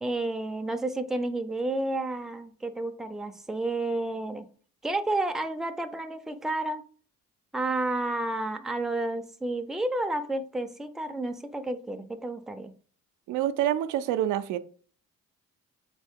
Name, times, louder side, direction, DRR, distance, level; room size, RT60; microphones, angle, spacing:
voice 1, 0.0-4.5 4.8-6.8 7.5-12.7, right 2 dB, ahead, 0.4 m, -31 dB
voice 2, 13.3-14.6, right 11 dB, 85° right, 0.5 m, -27 dB
3.7 x 3.6 x 3.6 m
cardioid pair, 90°, 30 cm